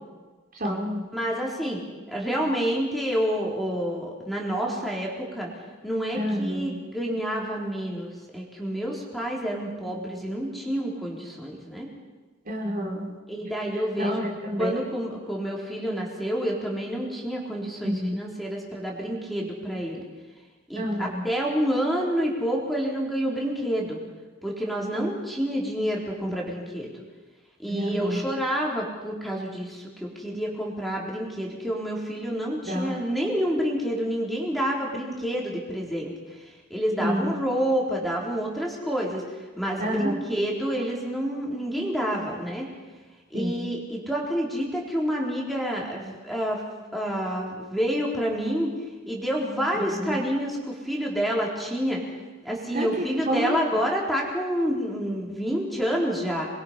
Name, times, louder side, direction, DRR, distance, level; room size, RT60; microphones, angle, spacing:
voice 1, 0.6-1.0 6.1-6.8 12.5-13.1 14.0-14.7 17.8-18.2 20.8-21.2 27.7-28.2 32.6-33.0 37.0-37.3 39.8-40.1 43.3-43.7 49.9-50.2 52.7-53.6, equal, 45° right, 0 dB, 3.6 m, -28 dB
voice 2, 1.1-1.8 2.1-5.5 5.8-11.9 13.3-14.2 14.6-20.0 20.7-24.0 24.4-26.9 27.6-36.1 36.7-39.2 39.6-42.7 43.3-46.6 46.9-48.7 49.1-52.0 52.4-56.5, equal, ahead, -3 dB, 4.1 m, -28 dB
28.0 x 22.0 x 5.8 m, 1.3 s
head